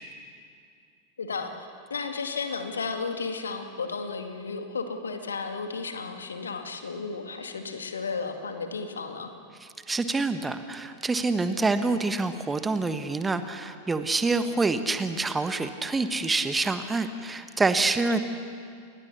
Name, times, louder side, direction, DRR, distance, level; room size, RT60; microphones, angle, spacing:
voice 1, 1.2-9.3 18.1-18.2, left 4 dB, 70° left, 6 dB, 2.1 m, -33 dB
voice 2, 9.9-18.2, right 3 dB, 10° right, 9 dB, 1.3 m, -26 dB
28.0 x 20.5 x 7.1 m, 2.4 s
figure-of-eight pair, 90°, 0 cm